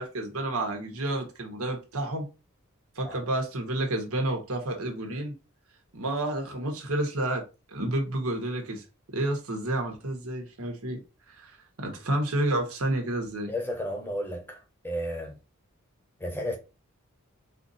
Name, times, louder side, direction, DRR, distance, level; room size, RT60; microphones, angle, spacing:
voice 1, 0.0-2.2 2.9-5.3 5.9-8.8 9.1-11.0 11.3-11.5 11.8-13.5, right 1 dB, 85° right, 1.4 m, -30 dB
voice 2, 13.5-15.3 16.2-16.6, equal, 10° left, 0.9 m, -33 dB
4.3 x 2.7 x 4.1 m
head